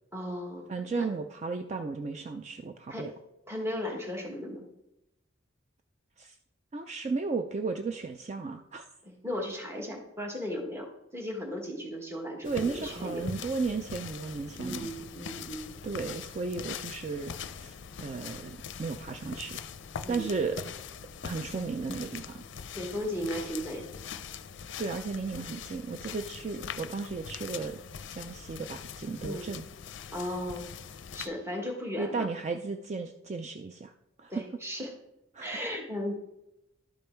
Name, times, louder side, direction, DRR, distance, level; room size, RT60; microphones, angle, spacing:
voice 1, 0.1-1.1 2.9-3.1 3.5-4.7 9.0-13.2 14.6-15.8 20.0-20.3 22.7-23.8 29.2-29.5 30.1-30.7 31.1-32.3 34.3-34.9 35.4-36.2, left 1 dB, 15° right, 1 dB, 1.3 m, -36 dB
voice 2, 0.7-3.1 6.2-6.4 6.7-8.8 12.4-14.9 15.8-17.7 18.0-19.6 20.1-20.6 21.2-22.4 24.8-27.8 28.1-29.7 32.0-33.9 34.2-34.3 35.3-35.5, right 4 dB, 35° right, 6 dB, 0.4 m, -34 dB
sound 1, 12.4-31.3, left 7 dB, 60° left, 0.5 m, -42 dB
11.5 x 5.3 x 4.4 m, 0.88 s
head